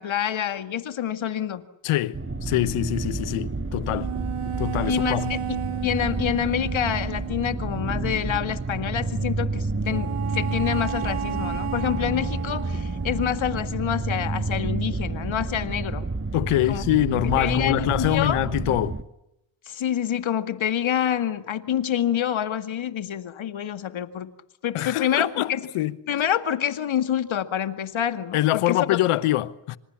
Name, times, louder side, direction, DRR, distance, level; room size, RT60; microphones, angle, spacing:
voice 1, 0.0-1.6 4.9-16.1 16.7-16.8 17.4-18.4 19.7-24.3 24.6-25.6 26.1-28.4 28.7-28.8, left 10 dB, 65° left, 2.1 m, -27 dB
voice 2, 1.8-4.1 4.6-5.3 16.3-19.0 24.7-25.9 28.3-29.8, left 15 dB, 85° left, 1.2 m, -24 dB
sound 1, 2.1-19.0, right 3 dB, 25° right, 2.0 m, -30 dB
sound 2, 3.9-7.5 9.9-13.8, right 10 dB, 80° right, 2.0 m, -33 dB
26.5 x 26.5 x 7.3 m
supercardioid pair, 50°, 50 cm